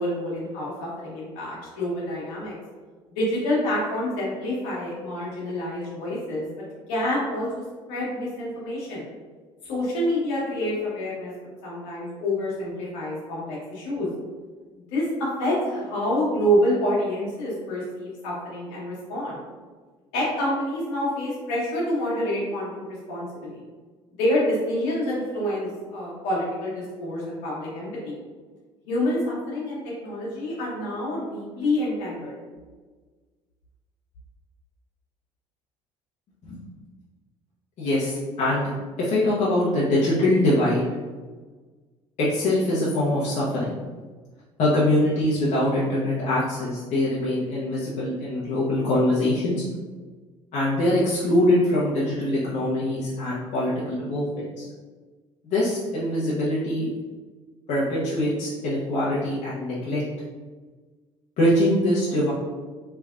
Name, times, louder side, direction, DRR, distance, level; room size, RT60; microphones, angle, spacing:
voice 1, 0.0-2.5 3.1-6.5 6.9-7.5 7.9-9.1 9.6-11.3 11.6-14.1 14.9-19.4 20.1-23.6 24.2-28.2 28.8-32.3, left 1 dB, 75° left, -6 dB, 1.4 m, -27 dB
voice 2, 37.8-38.7 39.0-40.9 42.2-43.8 44.6-49.6 50.5-54.7 55.4-56.9 57.7-60.0 61.4-62.3, left 1 dB, 55° left, -8 dB, 0.9 m, -23 dB
3.4 x 3.3 x 2.5 m, 1.4 s
hypercardioid pair, 65°, 14 cm